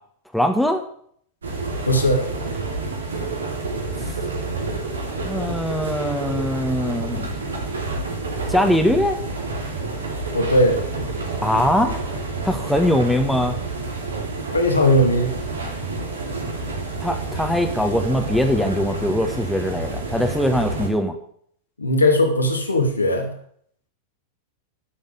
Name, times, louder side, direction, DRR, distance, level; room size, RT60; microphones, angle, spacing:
voice 1, 0.3-0.8 5.2-7.3 8.5-9.2 11.4-12.0 12.4-13.6 17.0-21.1, left 1 dB, ahead, 4 dB, 1.6 m, -21 dB
sound 1, 1.4-20.9, right 3 dB, 70° right, 2.9 m, -29 dB
voice 2, 1.9-2.2 10.3-10.8 14.5-15.3 21.8-23.3, left 1 dB, 80° left, 3 dB, 2.4 m, -18 dB
11.0 x 7.4 x 8.1 m, 0.63 s
figure-of-eight pair, 90°, 0 cm